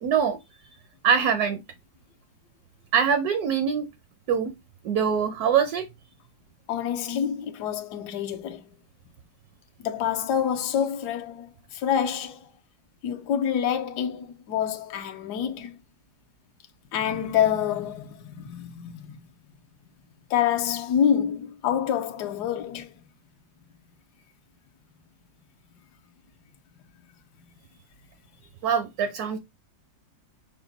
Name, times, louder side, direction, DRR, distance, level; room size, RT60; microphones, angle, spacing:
voice 1, 0.0-0.4 1.0-1.6 2.9-3.9 4.3-4.5 4.8-5.9 28.6-29.4, right 7 dB, 70° right, 0.9 m, -23 dB
voice 2, 6.7-8.6 9.8-12.5 13.0-15.7 16.9-19.2 20.3-22.9, left 9 dB, 70° left, 1.2 m, -27 dB
6.0 x 2.2 x 3.9 m
omnidirectional pair, 2.0 m